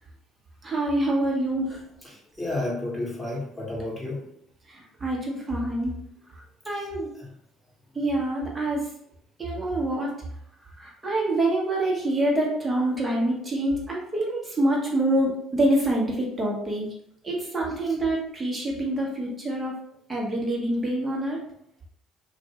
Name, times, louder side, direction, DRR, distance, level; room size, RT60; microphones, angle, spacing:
voice 1, 0.6-1.8 4.7-6.0 6.6-7.1 7.9-8.8 9.4-10.1 10.8-16.9 17.2-19.7 20.1-21.4, right 1 dB, 25° right, -2 dB, 1.1 m, -26 dB
voice 2, 2.0-4.3 6.7-6.9 7.1-7.3, left 2 dB, 5° left, -4 dB, 1.4 m, -32 dB
2.5 x 2.3 x 2.9 m, 0.71 s
hypercardioid pair, 60°, 0 cm